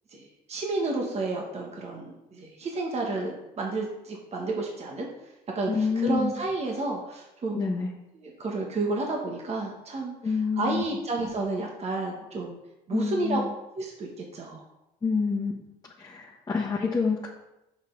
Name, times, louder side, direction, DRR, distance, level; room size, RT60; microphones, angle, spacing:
voice 1, 0.1-5.1 5.5-7.7 8.1-12.6 12.9-13.4 13.8-14.6, right 3 dB, 40° right, 0 dB, 1.3 m, -31 dB
voice 2, 5.7-6.3 7.5-7.9 10.2-10.8 12.9-13.5 15.0-15.5 16.0-17.3, left 5 dB, 25° left, -4 dB, 1.3 m, -27 dB
6.6 x 6.1 x 3.9 m, 0.91 s
cardioid pair, 90°, 17 cm